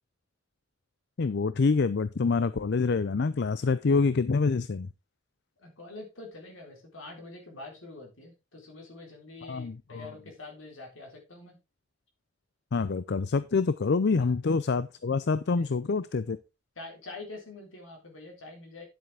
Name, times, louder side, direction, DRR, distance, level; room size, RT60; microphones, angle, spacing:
voice 1, 1.2-4.9 9.4-10.0 12.7-16.4, left 4 dB, 55° left, 0.5 m, -26 dB
voice 2, 5.6-11.6 14.2-14.3 15.6-15.7 16.8-18.9, left 2 dB, 70° left, 4.0 m, -45 dB
10.5 x 7.7 x 3.5 m
head